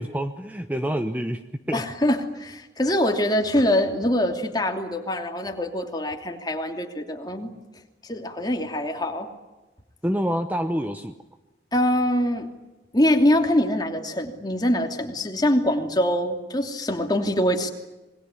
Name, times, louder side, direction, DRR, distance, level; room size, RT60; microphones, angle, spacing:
voice 1, 0.0-1.4 1.7-1.8 10.0-11.1, equal, 10° right, 8 dB, 0.9 m, -27 dB
voice 2, 1.7-7.5 8.0-9.3 11.7-12.5 12.9-17.7, left 1 dB, 20° left, 3 dB, 2.9 m, -24 dB
27.0 x 21.5 x 9.7 m, 1.1 s
head